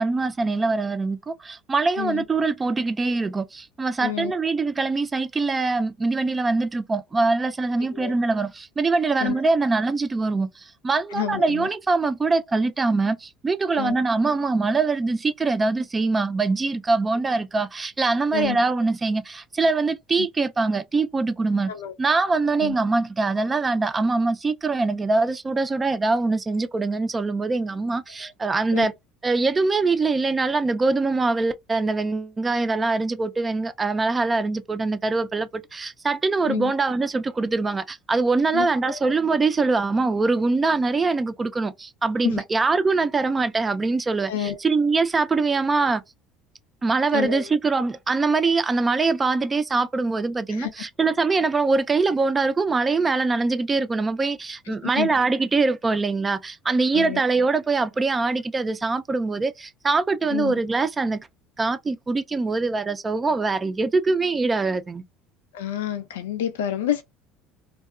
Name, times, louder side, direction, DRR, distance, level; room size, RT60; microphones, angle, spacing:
voice 1, 0.0-21.7 22.0-28.9 29.2-46.0 46.8-61.2 61.6-65.0, right 3 dB, 25° right, 0.4 m, -23 dB
voice 2, 4.0-4.4 7.9-8.1 9.2-9.4 11.1-11.7 13.7-14.0 18.3-18.6 20.2-20.3 21.7-21.9 22.6-22.8 28.2-28.3 28.7-28.9 36.5-36.7 38.5-39.1 42.2-42.4 44.3-44.6 47.1-47.5 50.5-50.7 54.7-55.1 56.9-57.2 60.3-60.5 65.5-67.0, left 11 dB, 85° left, 0.3 m, -29 dB
2.7 x 2.3 x 2.3 m
hypercardioid pair, 80°, 0 cm